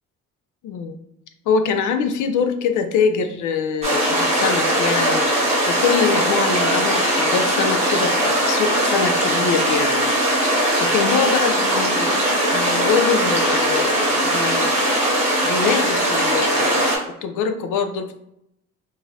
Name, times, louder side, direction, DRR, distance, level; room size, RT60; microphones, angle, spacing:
voice 1, 0.6-1.0 1.5-5.2 5.7-10.0 10.8-14.9 15.4-18.1, left 6 dB, 80° left, 7 dB, 0.5 m, -24 dB
sound 1, 3.8-17.0, right 1 dB, 20° right, 0.9 m, -20 dB
2.6 x 2.4 x 3.2 m, 0.79 s
cardioid pair, 140°, 30 cm